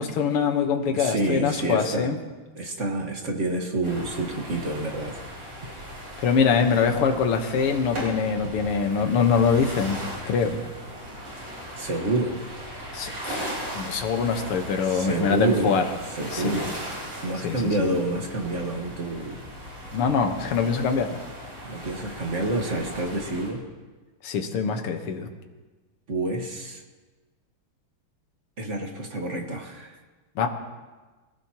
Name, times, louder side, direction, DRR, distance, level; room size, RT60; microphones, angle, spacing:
voice 1, 0.0-2.2 6.2-10.6 12.9-15.9 16.3-16.6 17.4-17.7 19.9-21.2 24.2-25.3 30.4-30.5, left 6 dB, 85° left, 5 dB, 2.1 m, -24 dB
voice 2, 0.9-2.1 2.5-5.2 11.8-12.4 14.8-15.7 16.1-16.7 17.2-19.4 20.7-20.8 21.6-23.6 26.1-26.8 28.6-30.0, right 2 dB, 35° right, 2 dB, 1.6 m, -28 dB
sound 1, 3.8-23.5, equal, 80° right, 5.1 m, -38 dB
25.5 x 16.0 x 2.9 m, 1.3 s
omnidirectional pair, 2.4 m